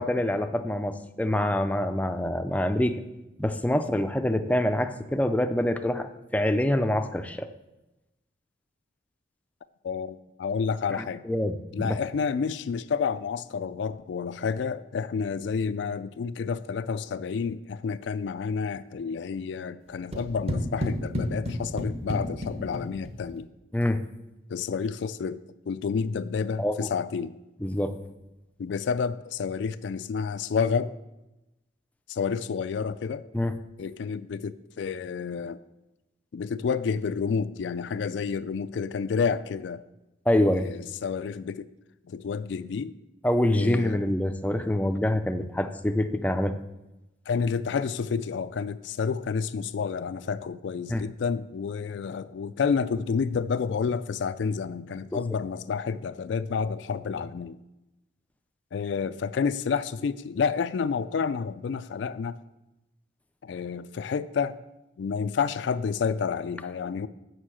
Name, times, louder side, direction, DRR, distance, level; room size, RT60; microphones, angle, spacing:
voice 1, 0.0-3.0 3.4-7.5 11.0-12.0 23.7-24.0 26.6-26.9 27.6-28.0 33.3-33.6 40.3-40.7 43.2-46.6 50.9-51.0 55.1-55.2, left 1 dB, 10° left, 0.4 m, -26 dB
voice 2, 9.8-11.2 11.7-23.5 24.5-25.4 25.7-27.4 28.6-30.9 32.1-33.3 33.8-35.6 36.3-39.8 40.5-41.7 42.1-42.9 43.5-44.0 47.3-57.6 58.7-62.4 63.4-64.6 65.0-67.1, left 5 dB, 70° left, 0.3 m, -29 dB
sound 1, 20.1-23.3, left 1 dB, 35° right, 1.1 m, -31 dB
6.5 x 6.2 x 7.5 m
head